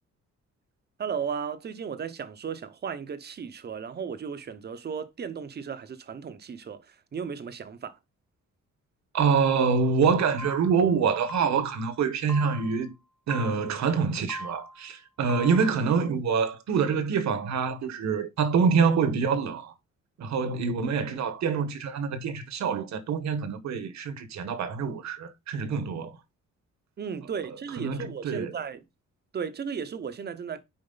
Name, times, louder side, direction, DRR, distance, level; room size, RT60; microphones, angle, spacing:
voice 1, 1.0-8.0 27.0-28.8 29.3-30.6, right 6 dB, 35° right, 0.9 m, -35 dB
voice 2, 9.1-12.9 13.3-19.7 20.2-26.1 27.8-28.5, right 5 dB, 65° right, 1.4 m, -26 dB
sound 1, 10.4-10.9 11.3-11.9 12.3-12.9 13.3-13.9 14.3-14.9 15.3-15.9, equal, 5° left, 0.8 m, -40 dB
8.8 x 5.0 x 3.9 m
wide cardioid pair, 175°, 30 cm